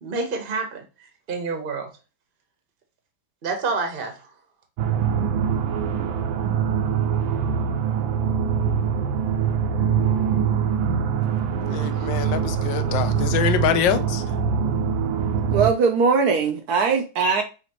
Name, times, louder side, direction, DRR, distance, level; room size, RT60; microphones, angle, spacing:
voice 1, 0.0-0.8 1.3-1.9 3.4-4.3, right 4 dB, 40° right, 0.8 m, -28 dB
sound 1, 4.8-15.7, right 7 dB, 85° right, 1.4 m, -23 dB
voice 2, 11.7-14.2, left 9 dB, 75° left, 1.2 m, -24 dB
voice 3, 15.5-17.4, right 5 dB, 70° right, 1.0 m, -20 dB
5.9 x 2.9 x 2.9 m
omnidirectional pair, 2.2 m